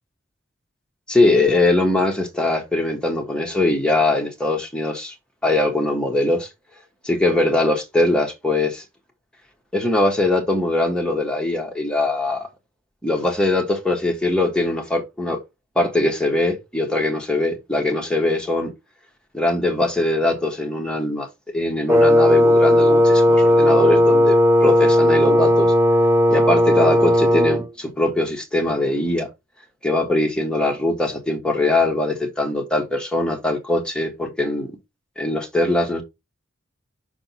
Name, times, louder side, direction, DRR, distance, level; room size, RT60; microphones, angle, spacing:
voice 1, 1.1-5.1 5.4-6.5 7.0-8.8 9.7-12.5 13.0-15.4 15.7-18.7 19.3-25.7 26.3-29.3 29.8-34.8 35.2-36.0, left 2 dB, 5° left, 1.4 m, -21 dB
Wind instrument woodwind instrument, 21.9-27.7, left 1 dB, 15° right, 0.4 m, -15 dB
6.1 x 3.8 x 5.7 m
head